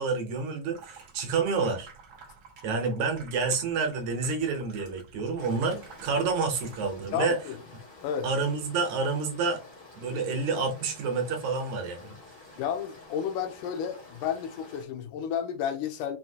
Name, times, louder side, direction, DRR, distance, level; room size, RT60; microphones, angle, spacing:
voice 1, 0.0-1.9 2.6-7.4 8.2-9.6 10.0-12.2, right 4 dB, 70° right, 2.0 m, -29 dB
Water tap faucet / Sink (filling or washing), 0.6-7.1, right 4 dB, 85° right, 1.0 m, -51 dB
sound 1, 5.4-14.8, left 2 dB, 55° left, 0.5 m, -50 dB
voice 2, 7.1-7.6 8.0-8.3 12.6-16.2, left 8 dB, 80° left, 2.1 m, -31 dB
5.8 x 2.7 x 2.7 m
omnidirectional pair, 3.8 m